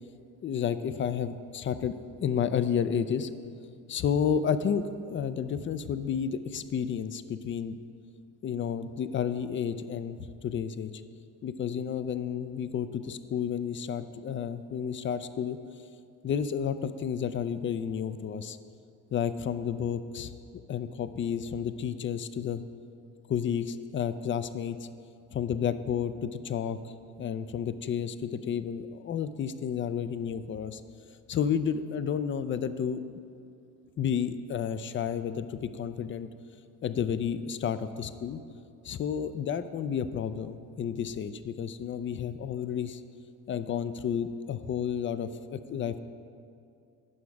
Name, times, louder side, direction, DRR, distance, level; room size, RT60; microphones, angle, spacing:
voice 1, 0.4-1.9 2.2-3.3 3.9-7.8 8.4-10.9 11.4-15.6 16.2-18.6 19.1-20.3 20.7-22.6 23.3-24.8 25.3-30.8 31.3-33.0 34.0-36.3 36.8-38.4 38.8-43.0 43.5-46.0, left 8 dB, 30° left, 12 dB, 0.4 m, -31 dB
8.5 x 5.9 x 4.7 m, 2.5 s
supercardioid pair, 70°, 39 cm